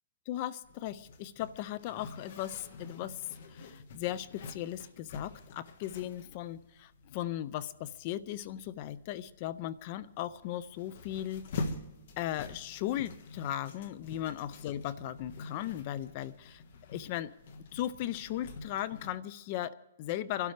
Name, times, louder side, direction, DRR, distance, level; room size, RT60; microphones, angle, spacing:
voice 1, 0.3-3.2 3.5-11.4 12.2-16.6 16.9-17.3 17.7-20.5, left 12 dB, 35° left, 18 dB, 0.4 m, -37 dB
Zipper (clothing), 0.6-19.2, left 3 dB, 55° left, 1.4 m, -46 dB
26.5 x 12.0 x 3.3 m, 0.98 s
hypercardioid pair, 155°, 0 cm